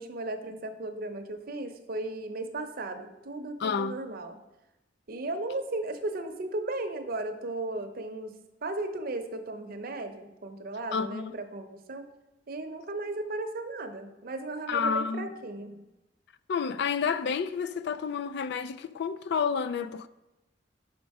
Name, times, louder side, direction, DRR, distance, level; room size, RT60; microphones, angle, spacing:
voice 1, 0.0-4.4 5.1-8.3 8.6-12.0 12.5-15.8, right 2 dB, 55° right, 0.7 m, -36 dB
voice 2, 3.6-4.0 10.9-11.3 14.7-15.3 16.5-20.1, left 6 dB, 65° left, 0.3 m, -30 dB
6.0 x 5.2 x 4.7 m
head